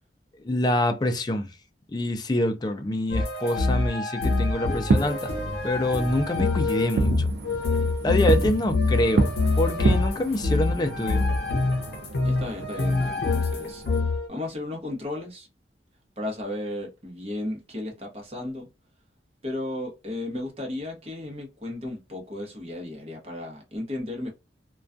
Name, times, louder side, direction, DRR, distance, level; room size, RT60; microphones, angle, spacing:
voice 1, 0.4-1.5 1.9-5.3 5.6-7.3 8.0-9.3 9.6-11.2, left 1 dB, 25° left, 0.3 m, -26 dB
sound 1, 3.1-14.3, left 3 dB, 60° left, 0.7 m, -26 dB
Fireworks, 4.7-14.0, right 3 dB, 65° right, 0.4 m, -30 dB
voice 2, 12.2-13.8 14.3-15.5 16.2-18.7 19.4-24.3, left 1 dB, 35° right, 0.8 m, -34 dB
2.3 x 2.2 x 2.5 m
head